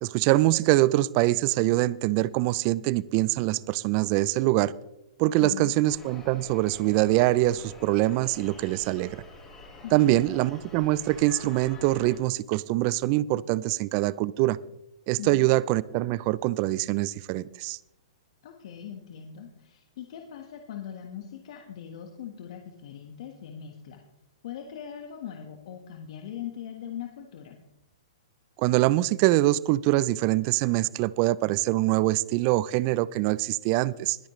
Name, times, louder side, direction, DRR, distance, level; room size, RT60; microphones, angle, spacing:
voice 1, 0.0-4.7 5.2-9.2 9.9-14.6 15.1-17.8 28.6-34.2, right 17 dB, 40° right, 0.4 m, -24 dB
voice 2, 5.4-5.7 9.8-10.2 15.2-15.5 18.4-24.0 24.4-27.6, left 9 dB, 60° left, 1.5 m, -40 dB
sound 1, 5.9-12.2, left 2 dB, 15° left, 4.1 m, -47 dB
21.0 x 8.7 x 3.2 m
hypercardioid pair, 135°, 3 cm